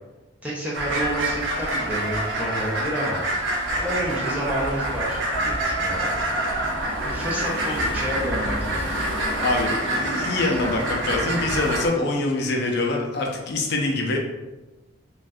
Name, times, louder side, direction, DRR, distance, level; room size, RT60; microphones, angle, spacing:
voice 1, 0.4-3.2 3.8-6.1 7.0-8.9, equal, 5° right, -6 dB, 0.5 m, -29 dB
sound 1, 0.7-11.9, right 1 dB, 60° right, 0.5 m, -26 dB
voice 2, 9.4-14.2, left 2 dB, 50° left, 1 dB, 0.4 m, -24 dB
2.5 x 2.3 x 3.3 m, 1.1 s
head